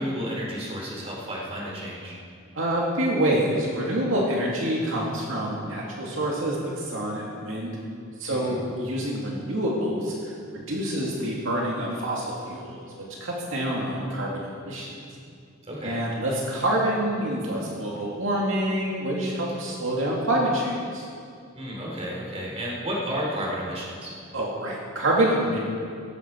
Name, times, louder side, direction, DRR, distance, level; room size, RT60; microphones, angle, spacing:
voice 1, 0.0-2.2 8.3-8.6 15.7-16.0 21.6-24.1, equal, 30° right, -3 dB, 3.6 m, -32 dB
voice 2, 2.6-7.7 8.2-10.1 10.5-15.0 15.8-21.1 24.3-25.6, right 1 dB, 70° right, -3 dB, 2.4 m, -27 dB
16.5 x 15.0 x 4.6 m, 2.3 s
head